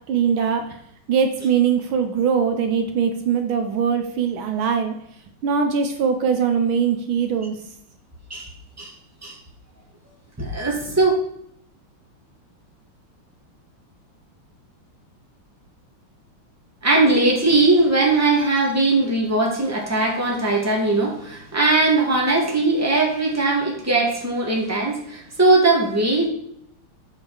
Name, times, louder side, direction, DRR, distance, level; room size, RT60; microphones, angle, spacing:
voice 1, 0.1-0.8 1.1-4.9 5.4-7.6, right 7 dB, 75° right, 6 dB, 1.6 m, -21 dB
voice 2, 10.4-11.1 16.8-26.3, right 2 dB, 10° right, -2 dB, 1.8 m, -19 dB
8.3 x 5.1 x 4.9 m, 0.71 s
omnidirectional pair, 2.4 m